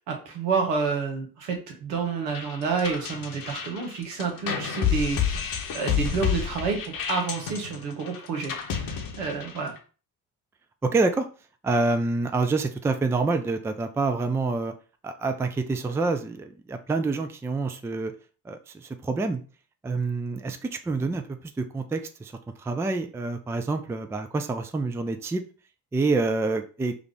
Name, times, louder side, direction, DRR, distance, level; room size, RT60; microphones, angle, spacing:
voice 1, 0.1-5.4 5.7-8.5 8.8-9.7, right 5 dB, 75° right, 2 dB, 1.0 m, -29 dB
sound 1, 2.3-9.8, left 8 dB, 45° left, 1.0 m, -30 dB
voice 2, 10.8-11.3 11.6-14.7 15.0-18.1 18.5-19.4 19.8-22.3 22.6-25.4 25.9-26.9, right 3 dB, 5° right, 7 dB, 0.4 m, -27 dB
4.8 x 2.4 x 3.4 m, 0.37 s
figure-of-eight pair, 40°, 47 cm